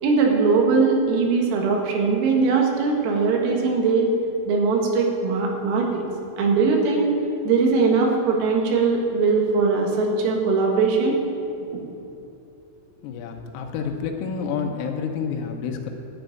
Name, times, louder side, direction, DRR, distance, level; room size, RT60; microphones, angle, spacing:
voice 1, 0.0-4.1 4.5-6.1 6.4-7.1 7.5-11.2 11.7-11.8, right 4 dB, 85° right, 0 dB, 4.3 m, -20 dB
voice 2, 13.0-15.9, left 6 dB, 80° left, 3 dB, 3.6 m, -29 dB
11.5 x 7.5 x 9.2 m, 2.7 s
omnidirectional pair, 6.0 m